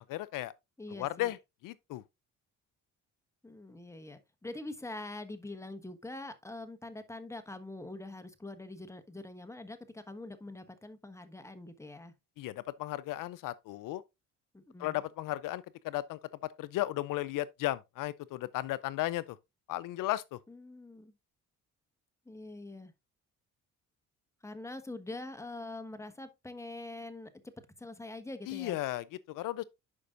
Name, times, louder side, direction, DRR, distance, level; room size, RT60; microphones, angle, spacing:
voice 1, 0.1-0.5 0.9-1.4 1.6-2.0 12.4-14.0 14.8-16.2 16.6-19.4 19.7-20.4 28.5-29.6, left 16 dB, 70° left, 0.5 m, -35 dB
voice 2, 0.8-1.3 3.4-12.1 14.5-15.0 20.5-21.1 22.2-22.9 24.4-27.3 27.8-28.8, left 2 dB, 10° left, 1.2 m, -44 dB
11.0 x 5.2 x 2.5 m
supercardioid pair, 70°, 33 cm